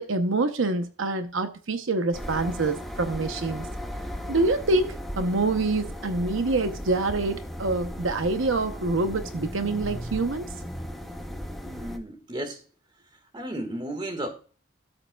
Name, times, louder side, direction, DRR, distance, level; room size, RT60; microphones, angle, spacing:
voice 1, 0.0-3.7 4.3-10.5, right 3 dB, 75° right, 0.8 m, -26 dB
sound 1, 2.1-12.0, equal, ahead, 0.8 m, -36 dB
voice 2, 11.6-12.6 13.3-14.3, right 1 dB, 25° right, 1.6 m, -33 dB
13.0 x 7.7 x 2.3 m
head